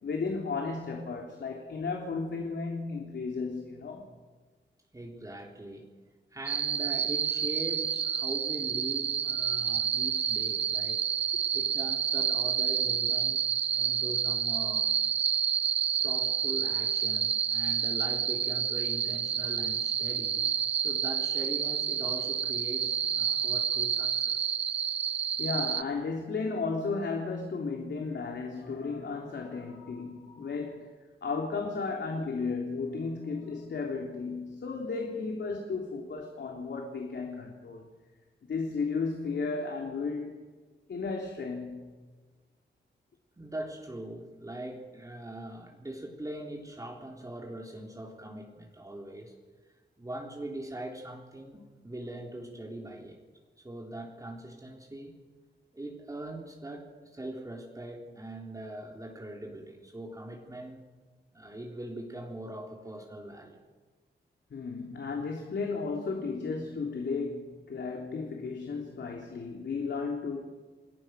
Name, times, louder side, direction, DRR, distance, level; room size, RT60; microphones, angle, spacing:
voice 1, 0.0-4.1 25.4-30.9 31.2-37.8 38.5-40.4 40.9-41.9 64.5-70.4, left 4 dB, 75° left, 1 dB, 3.6 m, -34 dB
voice 2, 4.9-5.9 6.3-11.1 11.5-13.4 13.7-14.9 16.0-20.4 20.8-24.5 43.4-49.3 50.0-53.2 53.6-55.2 55.7-60.8 61.3-63.6, right 1 dB, 20° right, -1 dB, 3.7 m, -41 dB
sound 1, 6.5-25.8, right 8 dB, 80° right, 0.8 m, -29 dB
29.5 x 21.0 x 6.5 m, 1.4 s
wide cardioid pair, 125°, 18 cm